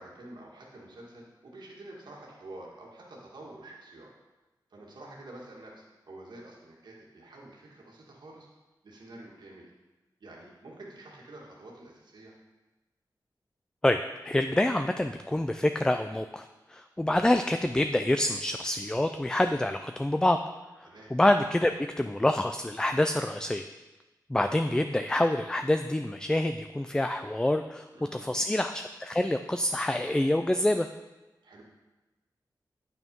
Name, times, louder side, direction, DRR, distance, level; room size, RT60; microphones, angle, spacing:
voice 1, 0.0-4.1 4.7-8.5 8.8-9.7 10.2-12.3 20.8-21.1 27.9-28.5 31.4-31.6, right 2 dB, 70° right, -3 dB, 1.9 m, -48 dB
voice 2, 13.8-20.4 20.8-23.7 24.3-27.9 28.1-30.9, left 1 dB, 10° left, 7 dB, 0.3 m, -27 dB
9.1 x 6.0 x 5.3 m, 1.1 s
wide cardioid pair, 110°, 8 cm